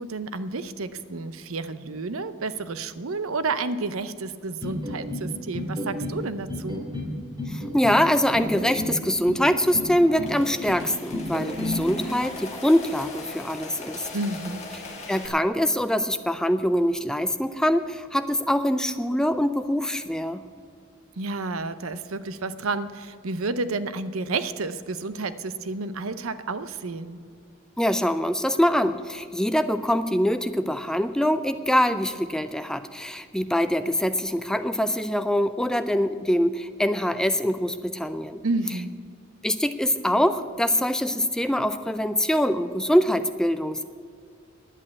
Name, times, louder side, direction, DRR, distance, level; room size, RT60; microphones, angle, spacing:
voice 1, 0.0-6.9 14.1-14.6 21.2-27.2 38.4-38.9, right 3 dB, 80° right, 13 dB, 0.7 m, -30 dB
sound 1, 4.6-5.3 5.5-6.2 6.5-7.1 7.4-8.0 8.3-8.9 9.3-9.9 10.2-10.8 11.1-11.8, left 1 dB, 20° right, 2.7 m, -31 dB
voice 2, 7.5-14.1 15.1-20.4 27.8-38.4 39.4-43.8, equal, 5° left, 11 dB, 0.3 m, -24 dB
sound 2, 9.7-15.3, left 3 dB, 30° left, 1.9 m, -40 dB
11.0 x 8.5 x 8.7 m, 2.2 s
head